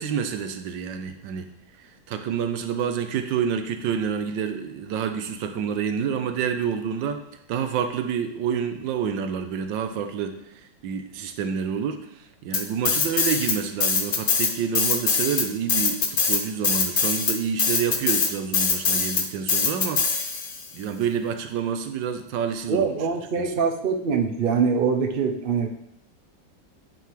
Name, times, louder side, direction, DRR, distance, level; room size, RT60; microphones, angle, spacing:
voice 1, 0.0-1.5 2.1-10.4 10.8-12.0 12.4-20.0 20.7-22.9 23.4-23.5, right 7 dB, 85° right, 7 dB, 1.4 m, -28 dB
sound 1, 12.5-13.6 13.8-20.6, left 5 dB, 65° left, 0.5 m, -22 dB
voice 2, 22.7-25.7, right 5 dB, 55° right, 4 dB, 0.6 m, -23 dB
10.0 x 5.2 x 3.2 m, 0.78 s
omnidirectional pair, 2.0 m